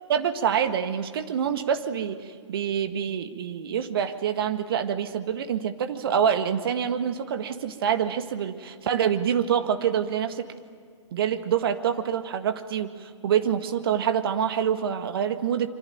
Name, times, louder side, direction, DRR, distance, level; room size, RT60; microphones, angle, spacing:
voice 1, 0.1-10.5 11.1-15.7, right 8 dB, 50° right, 8 dB, 1.8 m, -26 dB
26.5 x 24.5 x 9.1 m, 2.1 s
figure-of-eight pair, 125°, 16 cm